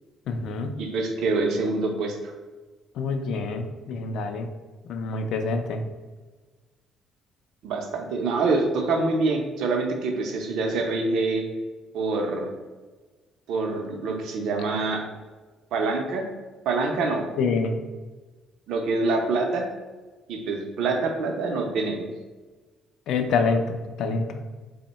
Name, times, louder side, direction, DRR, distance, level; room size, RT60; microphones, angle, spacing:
voice 1, 0.3-0.8 3.0-4.5 4.8-5.8 17.4-17.8 23.1-24.3, left 4 dB, 65° left, 6 dB, 0.4 m, -26 dB
voice 2, 0.8-2.3 7.6-11.5 11.9-12.5 13.5-15.1 15.7-16.2 16.7-17.2 18.7-19.7 20.3-22.1, right 3 dB, 70° right, 3 dB, 0.5 m, -25 dB
3.6 x 2.1 x 4.0 m, 1.3 s
cardioid pair, 155°, 0 cm